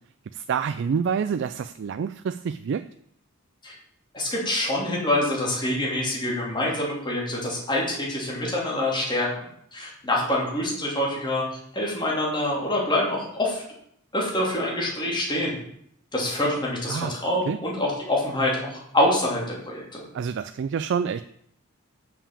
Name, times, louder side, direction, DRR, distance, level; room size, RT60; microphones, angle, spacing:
voice 1, 0.3-2.8 16.9-17.1 17.5-17.6 20.1-21.2, right 6 dB, 55° right, 11 dB, 0.3 m, -27 dB
voice 2, 4.1-11.4 11.7-13.6 14.1-15.6 16.1-20.0, left 1 dB, 20° left, -3 dB, 2.6 m, -26 dB
7.0 x 5.7 x 7.0 m, 0.70 s
head